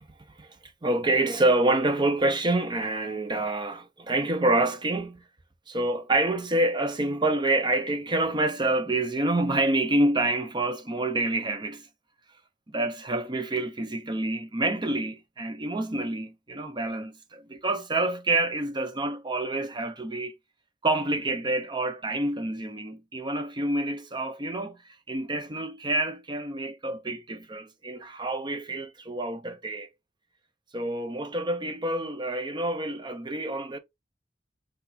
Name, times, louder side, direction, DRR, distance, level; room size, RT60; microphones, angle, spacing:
voice 1, 0.8-5.2 5.7-11.9 12.7-20.3 20.8-24.8 25.1-29.9 30.7-33.8, right 2 dB, 25° right, 0.7 m, -27 dB
5.8 x 2.7 x 2.7 m
head